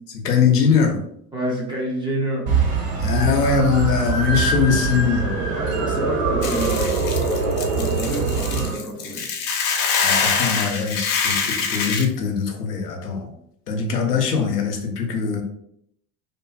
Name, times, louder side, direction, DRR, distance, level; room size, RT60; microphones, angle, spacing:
voice 1, 0.2-1.0 3.0-5.3 10.0-13.3 13.7-15.4, left 6 dB, 90° left, 3 dB, 0.7 m, -21 dB
voice 2, 1.3-2.5 5.5-7.0 7.8-9.2, right 1 dB, 10° right, -3 dB, 0.3 m, -28 dB
sound 1, 2.5-8.7, right 4 dB, 65° right, 1.2 m, -24 dB
sound 2, 4.7-9.1, right 3 dB, 50° right, 0.8 m, -27 dB
Hiss / Boiling, 6.4-12.0, left 5 dB, 40° left, 0.5 m, -24 dB
2.6 x 2.5 x 2.2 m, 0.71 s
hypercardioid pair, 80°, 46 cm